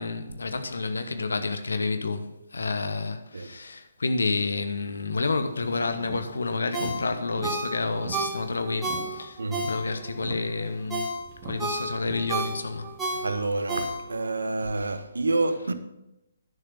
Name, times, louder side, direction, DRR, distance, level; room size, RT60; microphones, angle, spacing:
voice 1, 0.0-11.1 11.4-12.9, left 3 dB, 70° left, 1.1 m, -29 dB
sound 1, 5.4-13.0, right 4 dB, 30° right, 2.1 m, -43 dB
Ringtone, 6.7-10.2 10.6-14.4 14.7-14.8, right 2 dB, 10° right, 2.1 m, -32 dB
voice 2, 9.4-9.8 13.1-15.7, right 2 dB, 70° right, 1.0 m, -28 dB
11.0 x 6.8 x 5.6 m
figure-of-eight pair, 130°, 0 cm